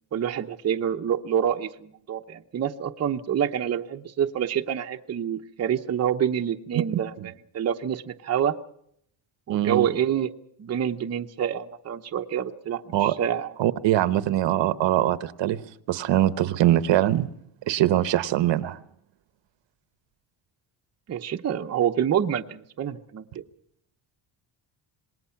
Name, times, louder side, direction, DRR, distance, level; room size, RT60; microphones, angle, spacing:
voice 1, 0.1-8.5 9.5-10.3 10.6-13.5 21.1-23.4, right 9 dB, 35° right, 5 dB, 0.9 m, -27 dB
voice 2, 9.5-9.9 12.9-13.1 13.6-15.6 15.9-17.3 17.7-18.8, right 13 dB, 65° right, 13 dB, 1.0 m, -22 dB
26.5 x 20.0 x 5.8 m, 0.71 s
cardioid pair, 170°, 47 cm